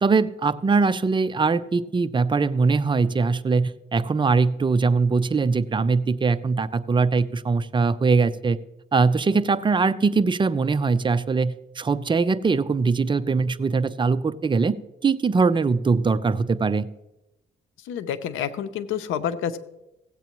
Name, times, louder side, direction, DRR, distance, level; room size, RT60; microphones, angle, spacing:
voice 1, 0.0-8.6 8.9-14.7 15.0-16.9, right 4 dB, 25° right, 13 dB, 0.5 m, -21 dB
voice 2, 17.9-19.6, left 9 dB, 85° left, 11 dB, 0.7 m, -28 dB
16.5 x 8.3 x 3.0 m, 0.91 s
cardioid pair, 90°, 20 cm